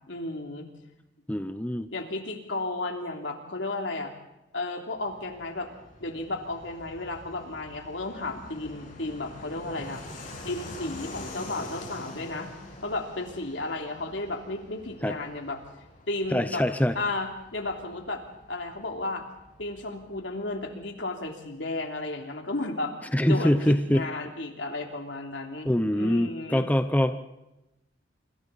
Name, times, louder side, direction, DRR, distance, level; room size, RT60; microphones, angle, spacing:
voice 1, 0.1-0.7 1.9-4.1 4.5-5.7 6.0-10.0 10.4-12.5 12.8-15.6 16.1-16.6 16.9-18.2 18.5-19.2 19.6-22.9 23.3-26.6, left 2 dB, 80° left, 3 dB, 3.2 m, -33 dB
voice 2, 1.3-1.9 15.0-15.1 16.3-17.0 23.1-24.1 25.6-27.3, equal, 10° left, 9 dB, 0.8 m, -24 dB
Fixed-wing aircraft airplane, 5.0-21.2, left 1 dB, 45° left, 7.6 m, -46 dB
26.0 x 26.0 x 4.2 m, 0.95 s
head